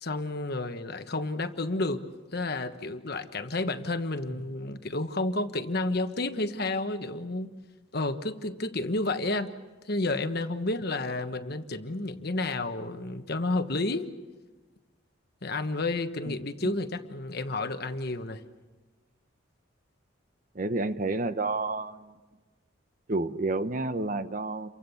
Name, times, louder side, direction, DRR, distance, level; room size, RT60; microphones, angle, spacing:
voice 1, 0.0-2.0 2.3-7.5 7.9-9.5 9.8-14.1 15.4-18.4, left 2 dB, 50° left, 8 dB, 1.3 m, -31 dB
voice 2, 20.5-22.1 23.1-24.7, right 2 dB, 40° right, 11 dB, 0.9 m, -30 dB
29.5 x 24.0 x 7.1 m, 1.2 s
head